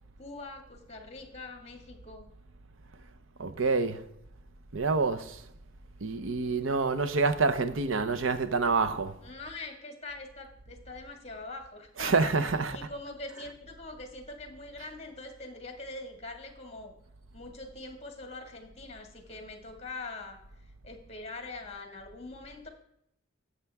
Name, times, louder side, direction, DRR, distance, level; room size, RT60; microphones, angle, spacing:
voice 1, 0.2-2.3 9.2-16.9 17.3-20.4 20.8-22.7, left 2 dB, 35° left, 1.9 m, -43 dB
voice 2, 3.4-4.0 4.7-5.4 6.0-9.1 12.0-12.9 13.4-13.5, right 4 dB, 75° right, 0.8 m, -27 dB
11.5 x 8.2 x 3.5 m
head